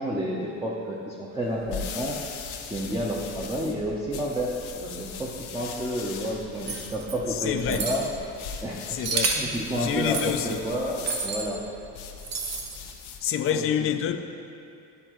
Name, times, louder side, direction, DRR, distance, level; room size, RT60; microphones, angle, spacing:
voice 1, 0.0-2.2 2.7-8.0 8.6-8.9 9.3-11.6 13.5-13.9, equal, 10° right, 0.7 m, -30 dB
sound 1, 1.4-13.3, left 6 dB, 90° left, 0.8 m, -40 dB
sound 2, 6.7-7.2 7.7-8.0 9.0-9.5 10.1-10.3 11.1-11.5 12.2-12.8, right 4 dB, 60° right, 0.9 m, -29 dB
voice 2, 7.5-7.9 8.9-9.3 9.7-10.6 13.2-14.2, left 9 dB, 40° left, 0.4 m, -27 dB
12.0 x 4.4 x 3.1 m
cardioid pair, 125°, 37 cm